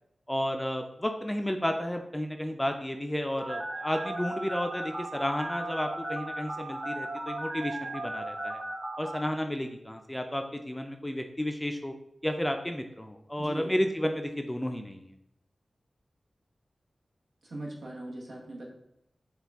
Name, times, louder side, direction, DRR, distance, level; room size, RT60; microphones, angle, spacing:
voice 1, 0.3-8.6 9.0-11.9 12.2-15.1, left 1 dB, 15° left, 5 dB, 0.4 m, -32 dB
Telephone, 3.4-9.2, right 1 dB, 55° right, 0.9 m, -36 dB
voice 2, 13.4-13.7 17.4-18.7, right 1 dB, 80° right, -3 dB, 0.9 m, -39 dB
4.2 x 2.3 x 3.4 m, 0.78 s
cardioid pair, 45°, 0 cm